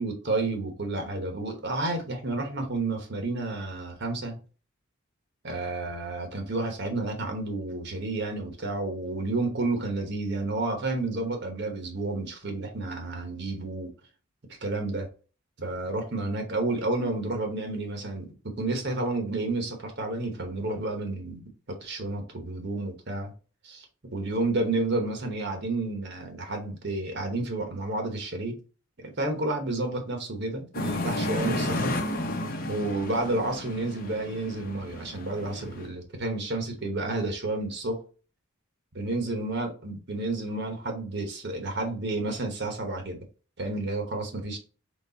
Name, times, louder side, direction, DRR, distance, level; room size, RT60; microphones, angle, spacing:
voice 1, 0.0-4.4 5.4-13.9 14.5-15.1 15.6-23.3 23.6-23.9 24.1-28.6 29.0-31.9 32.6-38.0 39.0-43.2 43.6-44.6, right 2 dB, 50° right, 1.1 m, -31 dB
sound 1, 30.7-35.9, left 1 dB, 40° left, 0.8 m, -32 dB
4.0 x 3.4 x 3.9 m
head